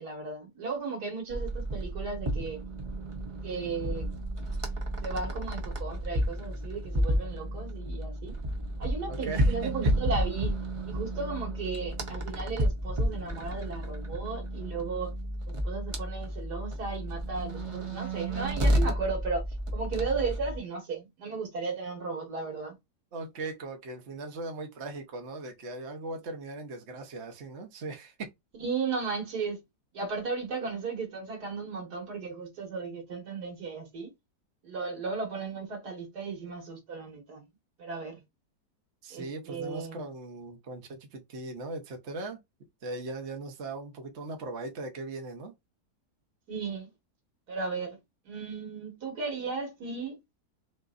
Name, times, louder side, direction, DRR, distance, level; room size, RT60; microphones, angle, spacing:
voice 1, 0.0-2.6 3.4-4.1 5.0-8.4 8.8-10.6 10.9-15.1 15.5-19.4 19.7-22.8 28.6-29.6 29.9-34.1 34.6-37.5 37.8-38.2 39.1-40.1 46.5-46.9 47.5-48.0 48.3-50.2, right 4 dB, 80° right, 2.1 m, -35 dB
sound 1, 1.3-20.6, equal, 30° right, 0.6 m, -31 dB
voice 2, 9.1-9.9 23.1-28.3 39.0-42.4 42.8-45.5, right 2 dB, 50° right, 1.1 m, -39 dB
5.8 x 2.6 x 2.5 m
omnidirectional pair, 1.7 m